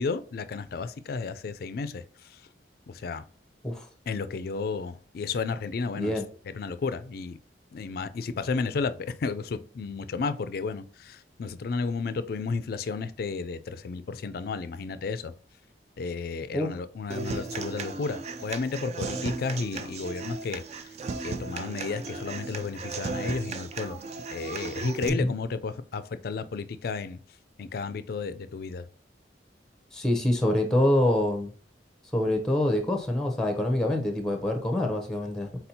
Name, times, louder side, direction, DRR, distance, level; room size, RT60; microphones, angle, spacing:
voice 1, 0.0-2.4 2.9-3.2 4.1-6.1 6.5-7.4 7.7-15.3 16.0-20.8 21.2-24.0 24.3-27.2 27.6-28.8, left 4 dB, 55° left, 0.3 m, -32 dB
Human voice / Acoustic guitar, 17.1-25.1, right 4 dB, 35° right, 0.4 m, -35 dB
voice 2, 29.9-31.5 32.1-35.5, left 1 dB, 5° left, 0.6 m, -25 dB
4.2 x 4.1 x 2.7 m
head